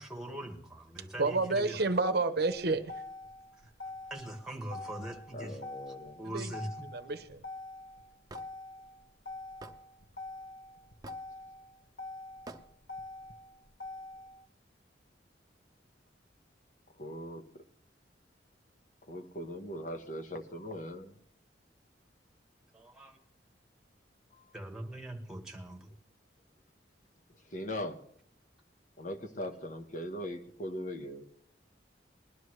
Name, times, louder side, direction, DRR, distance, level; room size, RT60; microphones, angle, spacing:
voice 1, 0.0-1.9 3.6-3.7 4.1-5.6 6.2-6.9 22.7-23.2 24.5-25.9, right 1 dB, 5° right, 2 dB, 1.9 m, -42 dB
voice 2, 1.2-2.9 6.3-6.5 6.8-7.4, right 3 dB, 60° right, 10 dB, 0.8 m, -30 dB
Motor vehicle (road), 2.5-14.4, left 2 dB, 85° left, 1.6 m, -45 dB
voice 3, 5.3-6.3 7.1-7.2 17.0-17.6 19.1-21.2 24.3-24.8 27.5-28.0 29.0-31.3, equal, 45° left, 7 dB, 1.1 m, -40 dB
Hammer / Wood, 8.3-8.5 9.6-9.8 11.0-11.3 12.5-12.7, right 2 dB, 20° right, 0.8 m, -46 dB
20.5 x 12.5 x 3.2 m, 0.65 s
head